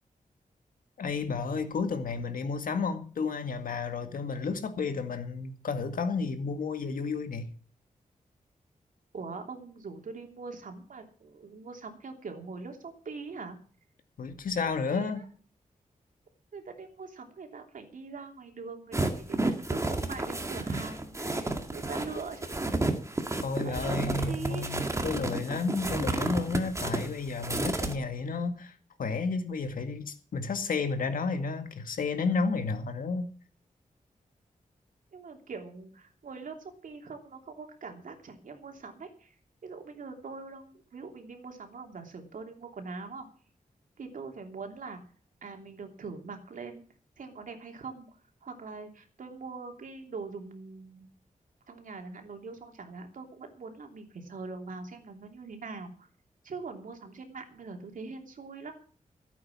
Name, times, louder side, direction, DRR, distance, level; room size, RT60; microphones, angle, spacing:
voice 1, 1.0-7.5 14.2-15.2 23.4-28.7 29.0-33.3, left 4 dB, 90° left, 2.0 m, -32 dB
voice 2, 9.1-13.6 14.8-15.3 16.5-22.8 23.6-24.7 35.1-39.3 39.6-43.3 44.0-45.0 45.4-46.8 47.2-48.1 48.4-51.1 51.7-56.1 56.4-58.7, right 4 dB, 70° right, 3.0 m, -42 dB
sound 1, 18.9-27.9, right 2 dB, 20° right, 2.0 m, -31 dB
15.5 x 8.5 x 7.2 m
wide cardioid pair, 125°, 14 cm